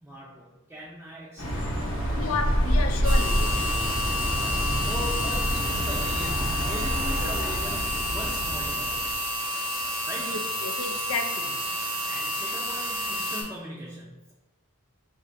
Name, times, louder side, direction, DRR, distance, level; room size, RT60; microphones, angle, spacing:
voice 1, 0.0-2.3 4.3-9.0 10.1-10.4 11.4-11.5 11.9-14.3, equal, 10° right, -7 dB, 0.5 m, -40 dB
sound 1, 1.4-9.2, equal, 55° left, 0.9 m, -27 dB
voice 2, 2.1-3.7 10.2-11.5, left 4 dB, 70° left, 6 dB, 0.5 m, -32 dB
sound 2, 3.0-13.4, left 1 dB, 65° right, 1.0 m, -30 dB
3.5 x 2.6 x 4.4 m, 1.1 s
head